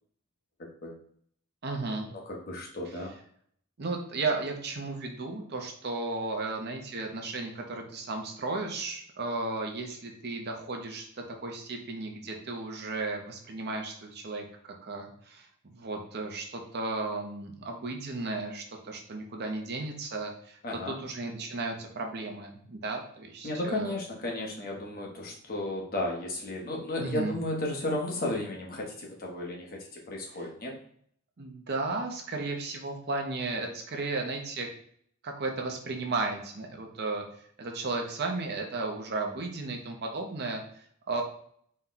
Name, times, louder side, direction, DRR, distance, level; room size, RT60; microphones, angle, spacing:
voice 1, 1.6-2.1 3.8-20.6 20.9-24.0 27.0-27.4 30.4-30.5 31.4-34.7 35.2-41.2, right 3 dB, 50° right, 3 dB, 0.7 m, -34 dB
voice 2, 2.1-3.1 20.6-21.0 23.4-30.7, left 1 dB, 45° left, -1 dB, 1.0 m, -34 dB
4.2 x 2.3 x 3.8 m, 0.63 s
head